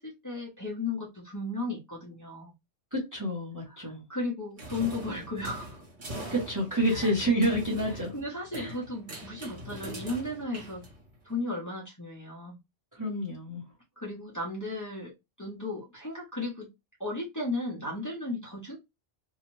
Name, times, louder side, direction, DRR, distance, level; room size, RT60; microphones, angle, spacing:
voice 1, 0.0-2.5 3.8-5.8 6.9-7.1 8.1-10.8 11.2-12.6 14.0-15.1 15.4-16.7 17.0-18.8, left 2 dB, 15° left, 0.9 m, -35 dB
voice 2, 2.9-4.0 6.3-8.1 8.5-8.7 12.9-13.6, right 1 dB, 20° right, 0.9 m, -28 dB
sound 1, 4.6-11.3, right 1 dB, 45° right, 1.2 m, -42 dB
2.7 x 2.4 x 3.1 m
omnidirectional pair, 1.2 m